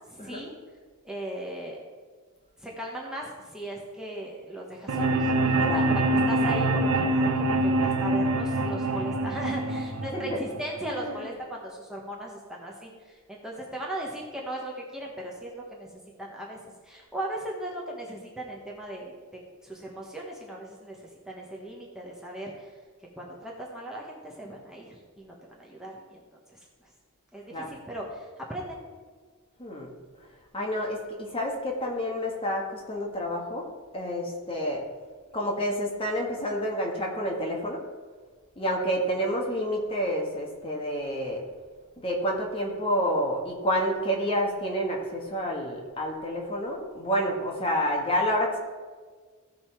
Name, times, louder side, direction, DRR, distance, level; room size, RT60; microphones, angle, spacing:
voice 1, 0.1-0.5 1.0-1.8 2.6-15.9 16.2-22.7 23.2-26.2 26.5-26.6 27.3-28.8, right 1 dB, 5° right, -3 dB, 1.3 m, -38 dB
sound 1, 4.9-10.9, right 2 dB, 75° right, 0.8 m, -25 dB
voice 2, 10.0-10.4 10.8-11.3 27.5-27.7 29.6-29.9 30.5-33.6 33.9-34.8 35.3-37.8 38.6-41.4 42.0-48.6, equal, 25° left, -1 dB, 1.6 m, -29 dB
15.5 x 5.3 x 4.6 m, 1.5 s
head